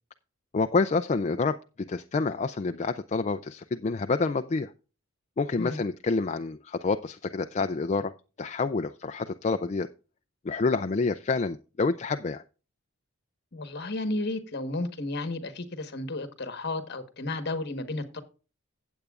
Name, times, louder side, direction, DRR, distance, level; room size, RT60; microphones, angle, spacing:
voice 1, 0.5-1.6 1.9-4.7 5.4-8.1 8.4-9.9 10.4-12.4, left 4 dB, 35° left, 0.4 m, -28 dB
voice 2, 13.5-18.2, left 2 dB, 50° left, 1.3 m, -33 dB
15.5 x 8.2 x 2.4 m
head